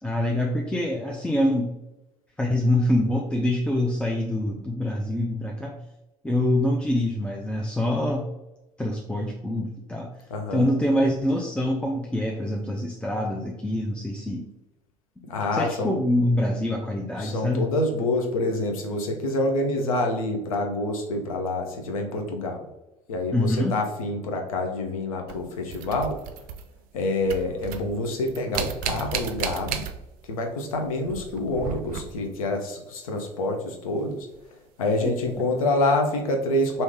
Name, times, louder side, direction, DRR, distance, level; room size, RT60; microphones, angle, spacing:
voice 1, 0.0-1.7 2.4-5.9 6.2-8.3 8.8-10.1 10.5-14.4 15.5-17.7 23.3-23.8, left 1 dB, 5° left, 0 dB, 0.5 m, -25 dB
voice 2, 10.3-10.7 15.3-15.9 17.2-22.6 23.1-26.1 26.9-29.8 30.3-34.3 34.8-36.8, left 2 dB, 80° left, 3 dB, 0.7 m, -27 dB
sound 1, 25.3-27.0 27.2-30.4 30.7-32.4 34.3-34.4 35.3-35.4, right 8 dB, 55° right, 0.4 m, -34 dB
3.1 x 2.7 x 3.4 m, 0.99 s
hypercardioid pair, 60°, 18 cm